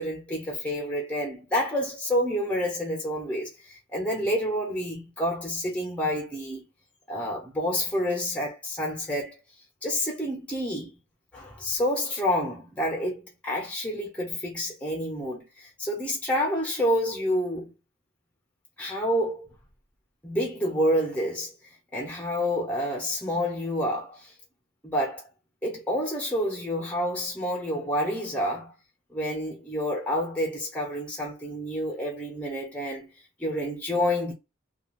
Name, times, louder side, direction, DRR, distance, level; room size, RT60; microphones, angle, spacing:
voice 1, 0.0-6.6 7.1-9.4 9.8-11.0 11.3-17.7 18.8-19.5 20.2-21.5 21.9-24.3 24.8-25.2 25.6-28.7 29.1-33.1 33.4-34.3, equal, 5° left, 0.8 m, -28 dB
2.4 x 2.2 x 3.2 m
head